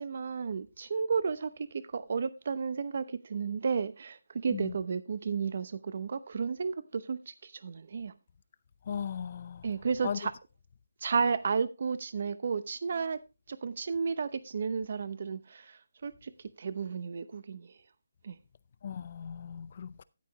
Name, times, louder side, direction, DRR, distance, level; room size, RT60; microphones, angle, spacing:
voice 1, 0.0-8.1 9.6-10.3 11.0-13.2 13.5-16.3 16.6-17.7 18.2-18.4, right 5 dB, 45° right, 0.7 m, -33 dB
voice 2, 8.9-9.7 10.0-10.2 18.8-20.0, left 7 dB, 40° left, 0.5 m, -37 dB
13.5 x 8.5 x 3.0 m
hypercardioid pair, 165°, 0 cm